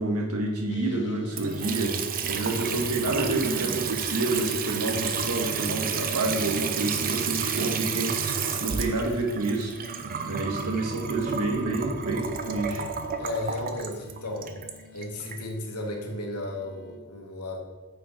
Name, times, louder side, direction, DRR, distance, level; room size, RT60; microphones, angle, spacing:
voice 1, 0.0-1.9 2.2-9.7 10.2-12.9, right 2 dB, 85° right, 0 dB, 1.5 m, -28 dB
sound 1, 0.7-17.0, left 3 dB, 55° left, 0.6 m, -51 dB
Water tap faucet / Sink (filling or washing) / Trickle dribble, 1.3-15.4, right 6 dB, 40° right, 0.6 m, -31 dB
voice 2, 2.5-2.8 13.2-14.5 14.9-17.6, left 1 dB, 85° left, 1 dB, 1.4 m, -34 dB
Sigh, 3.2-3.9, right 1 dB, ahead, 1.3 m, -37 dB
8.6 x 5.7 x 3.8 m, 1.3 s
head